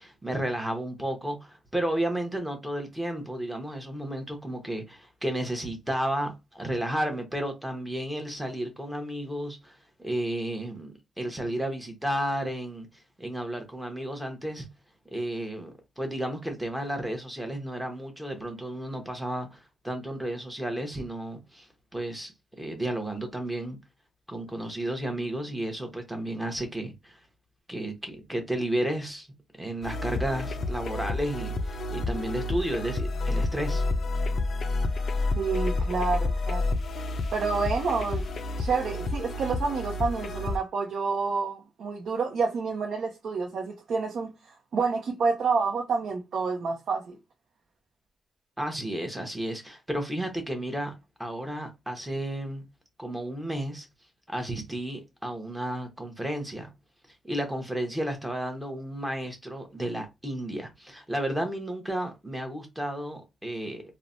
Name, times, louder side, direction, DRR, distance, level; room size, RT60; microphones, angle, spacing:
voice 1, 0.0-12.9 13.2-14.7 15.1-21.7 21.9-22.3 22.6-23.8 24.3-27.2 27.7-29.3 29.6-33.8 48.6-50.9 51.2-52.6 53.0-53.9 54.3-56.7 57.2-63.8, right 1 dB, 5° right, 0.8 m, -32 dB
sound 1, 29.8-40.6, left 2 dB, 55° left, 0.3 m, -29 dB
voice 2, 35.4-36.7 37.3-38.2 38.6-44.3 44.7-47.2, right 4 dB, 65° right, 0.6 m, -28 dB
3.1 x 2.0 x 2.5 m
cardioid pair, 120°, 0 cm